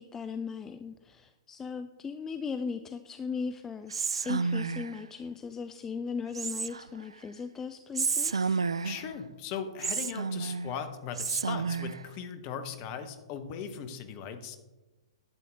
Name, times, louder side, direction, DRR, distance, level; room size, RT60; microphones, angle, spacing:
voice 1, 0.0-8.6, left 5 dB, 15° left, 9 dB, 0.3 m, -38 dB
Whispering, 3.9-5.0 6.3-7.0 7.9-9.1 9.8-10.7 11.2-12.0, right 5 dB, 70° right, 0.3 m, -31 dB
voice 2, 8.8-14.6, left 7 dB, 35° left, 9 dB, 1.0 m, -38 dB
11.5 x 7.5 x 3.4 m, 1.1 s
figure-of-eight pair, 110°, 3 cm